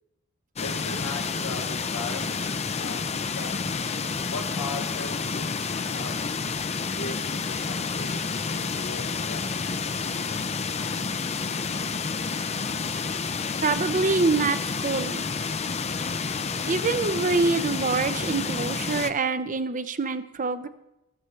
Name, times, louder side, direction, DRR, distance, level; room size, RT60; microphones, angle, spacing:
voice 1, 0.6-3.7 4.3-6.2 7.0-9.8 10.0-11.5, left 3 dB, 80° left, 0 dB, 1.4 m, -39 dB
sound 1, 0.6-19.1, left 5 dB, 30° left, 0.5 m, -29 dB
voice 2, 13.6-14.6 14.8-15.3 16.7-20.7, right 4 dB, 35° right, 12 dB, 0.7 m, -25 dB
14.5 x 13.0 x 3.3 m, 0.90 s
head